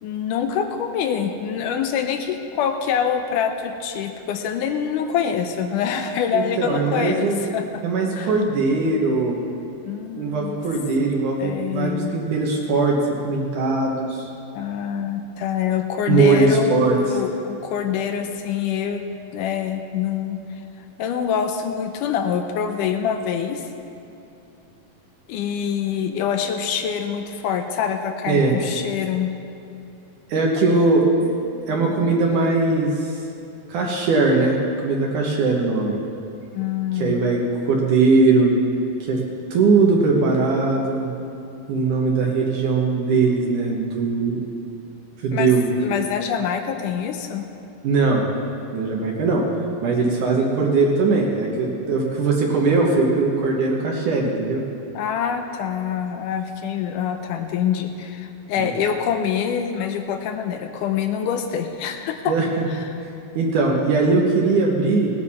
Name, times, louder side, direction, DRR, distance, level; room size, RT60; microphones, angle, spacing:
voice 1, 0.0-7.8 8.1-8.3 9.8-10.6 11.4-12.1 14.6-20.4 21.0-23.7 25.3-29.3 36.5-37.2 45.3-47.5 54.9-62.3 62.7-62.9, left 8 dB, 80° left, 6 dB, 2.0 m, -25 dB
voice 2, 6.3-7.4 7.8-9.4 10.2-13.0 13.2-14.2 16.1-17.0 28.3-28.5 30.3-32.9 33.7-34.6 34.8-36.0 37.0-37.4 37.7-38.5 39.0-39.2 39.5-41.1 41.7-44.4 45.2-45.6 47.8-48.2 48.7-49.4 49.8-54.6 58.6-58.7 62.3-62.5 63.3-65.1, right 3 dB, 65° right, -1 dB, 2.4 m, -20 dB
18.5 x 9.7 x 4.2 m, 2.8 s
omnidirectional pair, 4.2 m